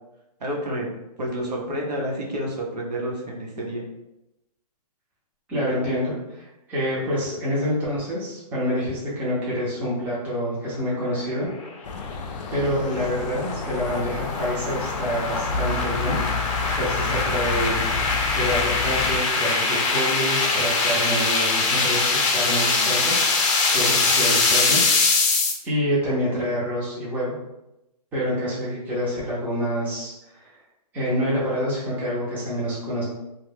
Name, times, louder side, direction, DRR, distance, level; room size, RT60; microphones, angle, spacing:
voice 1, 0.4-0.9 1.2-3.8, equal, 80° right, -2 dB, 0.8 m, -29 dB
voice 2, 5.5-11.5 11.8-12.1 12.5-25.3 25.6-27.4 28.1-30.6 30.9-33.0, equal, 10° right, -7 dB, 0.5 m, -27 dB
sound 1, 11.6-25.5, left 3 dB, 50° left, 0.6 m, -23 dB
sound 2, 11.8-19.2, left 5 dB, 90° left, 0.4 m, -31 dB
2.2 x 2.0 x 3.3 m, 0.92 s
hypercardioid pair, 155°, 21 cm